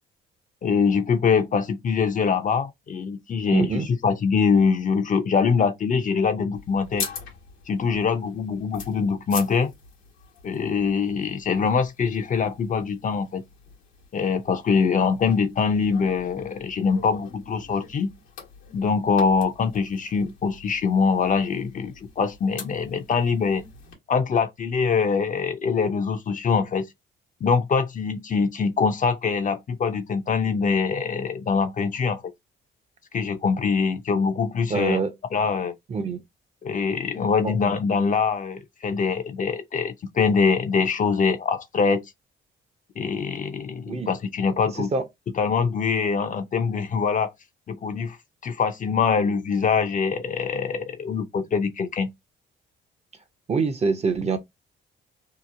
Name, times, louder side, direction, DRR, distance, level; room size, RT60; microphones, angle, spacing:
voice 1, 0.6-7.1 7.7-9.7 10.4-13.4 14.1-18.1 18.7-23.6 24.1-26.8 27.4-32.2 33.1-35.0 35.3-35.7 36.6-42.0 43.0-44.9 45.4-47.3 47.7-48.2 48.4-52.1, left 5 dB, 40° left, 0.5 m, -23 dB
voice 2, 3.5-3.9 34.7-35.1 35.9-36.2 37.4-37.5 43.9-44.1 44.7-45.0 53.5-54.4, right 4 dB, 35° right, 0.6 m, -25 dB
sound 1, 6.5-23.9, left 6 dB, 90° left, 1.0 m, -43 dB
2.9 x 2.0 x 2.4 m
cardioid pair, 90°, 20 cm